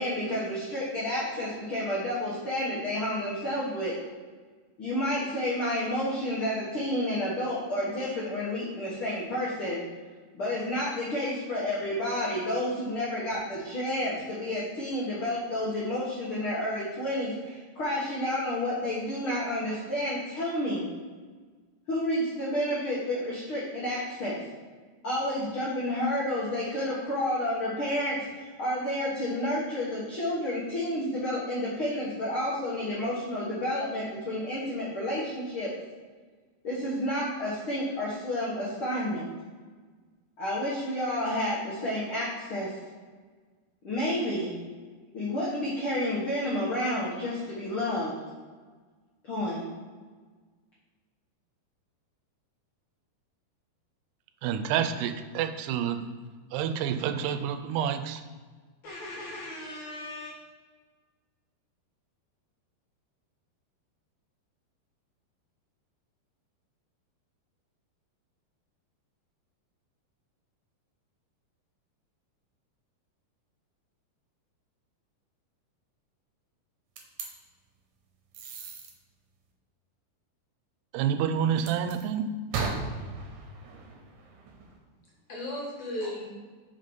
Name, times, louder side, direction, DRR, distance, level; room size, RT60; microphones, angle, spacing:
voice 1, 0.0-3.9 4.8-9.8 10.3-20.9 21.9-24.4 25.0-35.7 36.6-39.2 40.4-42.7 43.8-44.5 45.1-48.1 49.2-49.6, left 1 dB, 85° left, -7 dB, 1.1 m, -30 dB
voice 2, 54.4-56.0 56.5-58.2 80.9-82.3, right 8 dB, 85° right, 8 dB, 2.6 m, -28 dB
voice 3, 58.8-60.3 85.3-86.2, left 1 dB, 60° left, -5 dB, 2.2 m, -37 dB
sound 1, 77.0-77.3 78.3-78.9 81.6-82.0 82.5-84.8, right 4 dB, 70° right, 2.3 m, -36 dB
5.5 x 5.2 x 5.3 m, 1.4 s
omnidirectional pair, 4.6 m